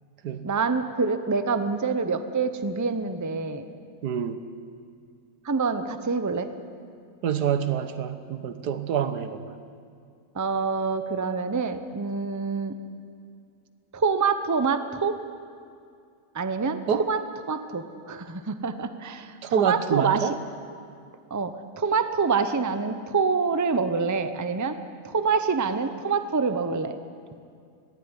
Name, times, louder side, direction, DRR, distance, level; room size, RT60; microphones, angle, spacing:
voice 1, 0.4-3.6 5.4-6.5 10.3-12.8 13.9-15.1 16.3-17.2 17.5-20.3 21.3-24.8 25.0-27.0, right 5 dB, 15° right, 10 dB, 0.6 m, -26 dB
voice 2, 4.0-4.4 7.2-9.5 16.9-17.1 19.4-20.4, right 8 dB, 80° right, 10 dB, 1.7 m, -26 dB
20.0 x 15.5 x 9.8 m, 2.3 s
omnidirectional pair, 1.7 m